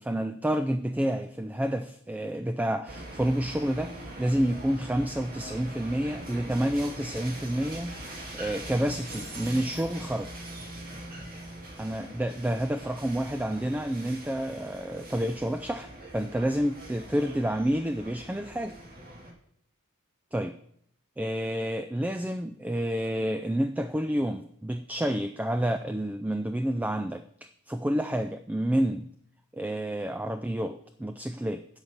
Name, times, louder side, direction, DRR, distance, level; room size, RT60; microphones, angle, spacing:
voice 1, 0.0-10.3 11.8-18.8 20.3-20.6 21.2-29.1 29.5-31.7, right 1 dB, 5° right, 9 dB, 0.3 m, -29 dB
sound 1, 2.8-19.3, right 1 dB, 40° right, 2.2 m, -42 dB
9.0 x 8.1 x 5.7 m, 0.67 s
head